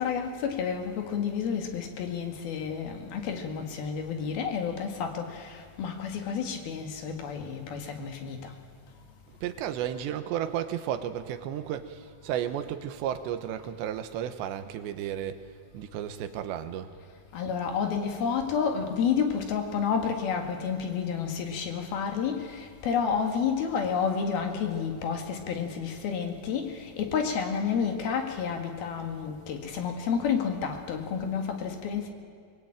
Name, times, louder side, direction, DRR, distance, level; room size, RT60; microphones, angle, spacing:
voice 1, 0.0-8.5 17.3-32.1, left 6 dB, 65° left, 4 dB, 3.5 m, -30 dB
voice 2, 9.3-15.5 15.7-16.9, right 10 dB, 90° right, 9 dB, 3.3 m, -33 dB
23.5 x 22.0 x 8.8 m, 2.1 s
omnidirectional pair, 5.0 m